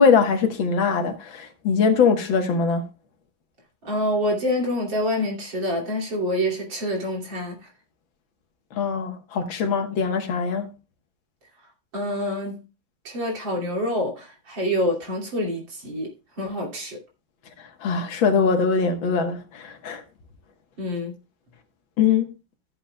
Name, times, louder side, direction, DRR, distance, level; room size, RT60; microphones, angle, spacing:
voice 1, 0.0-2.9 8.7-10.7 17.8-20.0 22.0-22.3, left 5 dB, 70° left, 2.0 m, -22 dB
voice 2, 3.9-7.6 11.9-12.6 13.1-16.1 16.4-17.0 20.8-21.2, equal, 65° right, 3.5 m, -26 dB
14.0 x 7.9 x 2.2 m
omnidirectional pair, 2.2 m